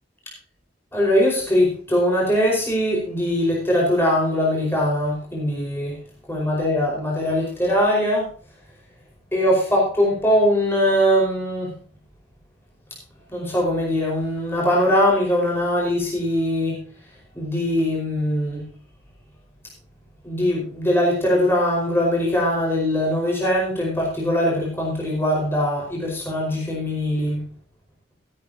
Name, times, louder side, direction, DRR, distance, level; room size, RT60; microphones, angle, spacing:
voice 1, 0.9-5.9 6.3-8.2 9.3-11.7 13.3-16.8 17.3-18.6 20.2-27.4, equal, 15° left, -3 dB, 5.0 m, -21 dB
14.5 x 13.0 x 2.9 m, 0.43 s
head